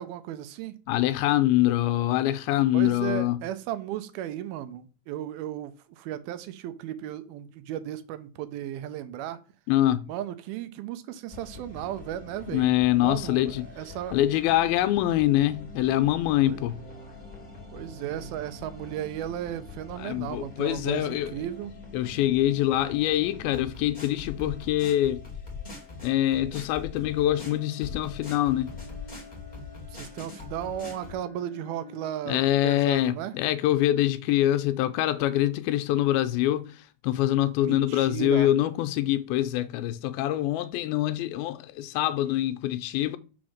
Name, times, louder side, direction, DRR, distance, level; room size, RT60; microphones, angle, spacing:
voice 1, 0.0-0.7 2.7-9.4 10.1-14.2 16.4-16.6 17.7-21.7 29.9-33.3 37.6-38.5, right 11 dB, 80° right, 2.5 m, -35 dB
voice 2, 0.9-3.4 9.7-10.1 12.5-13.7 14.1-16.8 20.0-21.3 21.9-25.3 26.0-28.8 32.3-43.2, left 14 dB, 85° left, 2.4 m, -25 dB
sound 1, 11.3-31.1, left 3 dB, 15° left, 2.0 m, -43 dB
Bowed string instrument, 27.1-32.4, left 2 dB, 20° right, 1.1 m, -50 dB
6.2 x 4.1 x 6.4 m
omnidirectional pair, 4.4 m